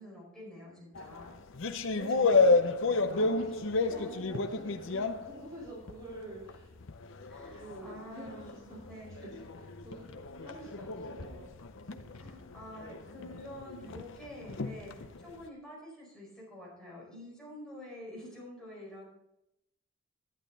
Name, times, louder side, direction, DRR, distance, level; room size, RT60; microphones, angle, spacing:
voice 1, 0.0-1.4 2.2-2.3 3.8-4.2 7.3-9.2 12.1-19.0, left 1 dB, 5° left, -5 dB, 4.9 m, -48 dB
sound 1, 1.0-6.1 6.5-15.4, left 3 dB, 60° left, 0.7 m, -31 dB
voice 2, 1.9-6.7 7.5-8.8 9.2-10.1 10.4-11.5, right 1 dB, 20° right, -7 dB, 3.3 m, -47 dB
sound 2, 9.8-12.6 12.9-14.0 14.3-14.6, left 2 dB, 90° left, 1.1 m, -50 dB
11.5 x 10.5 x 3.9 m, 0.87 s
head